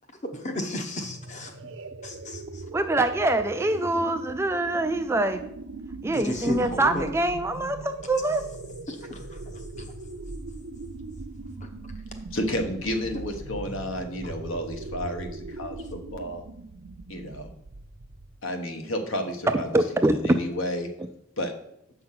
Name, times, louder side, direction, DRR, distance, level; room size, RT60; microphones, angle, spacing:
voice 1, 0.3-1.5 2.0-2.6 6.1-7.1 8.9-9.4 9.8-9.9 11.6-11.7, left 1 dB, 35° left, 6 dB, 1.0 m, -34 dB
sound 1, 0.9-18.5, right 3 dB, 60° right, 0.6 m, -40 dB
voice 2, 2.7-5.4 6.0-8.4 19.7-20.4, right 2 dB, 10° right, 7 dB, 0.3 m, -24 dB
voice 3, 12.3-16.4 17.1-17.5 18.4-20.9 21.4-21.5, left 1 dB, 65° left, 5 dB, 1.3 m, -31 dB
7.6 x 5.7 x 5.8 m, 0.75 s
head